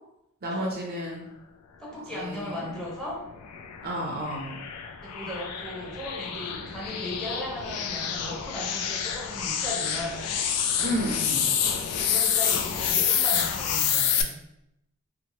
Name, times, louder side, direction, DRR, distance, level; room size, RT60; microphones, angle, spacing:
voice 1, 0.4-1.3 2.1-2.8 3.8-4.6 10.8-11.5, equal, 45° right, -1 dB, 0.5 m, -32 dB
voice 2, 1.8-3.2 5.0-10.2 12.1-14.4, left 1 dB, 5° left, -6 dB, 0.7 m, -36 dB
sound 1, 2.7-14.2, left 8 dB, 90° left, 0.3 m, -28 dB
2.8 x 2.0 x 2.9 m, 0.82 s
head